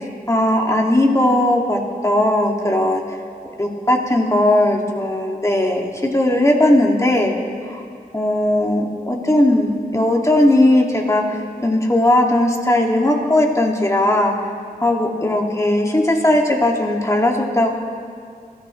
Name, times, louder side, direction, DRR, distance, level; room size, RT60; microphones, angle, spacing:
voice 1, 0.3-3.0 3.6-7.3 7.7-7.8 8.1-14.3 14.8-17.7, left 1 dB, 20° left, 0 dB, 1.9 m, -17 dB
19.0 x 14.0 x 3.0 m, 2.3 s
cardioid pair, 50°, 16 cm